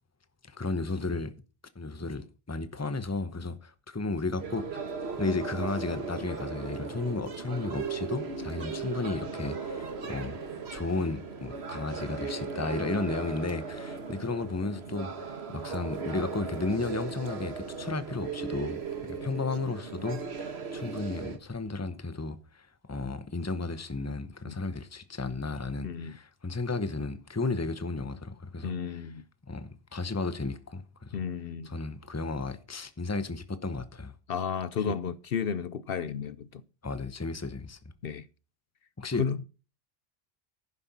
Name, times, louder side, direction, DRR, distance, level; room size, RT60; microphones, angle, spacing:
voice 1, 0.5-1.3 1.7-4.8 5.2-10.4 10.7-29.1 29.5-31.2 31.6-34.1 34.8-34.9 36.8-37.8 39.0-39.4, left 3 dB, 15° left, 0.9 m, -34 dB
sound 1, 4.3-21.4, right 5 dB, 85° right, 1.7 m, -37 dB
voice 2, 25.8-26.2 28.6-29.2 31.1-31.7 34.3-36.6 38.0-38.3 39.2-39.4, left 7 dB, 65° left, 0.9 m, -32 dB
11.5 x 9.8 x 4.1 m
omnidirectional pair, 1.0 m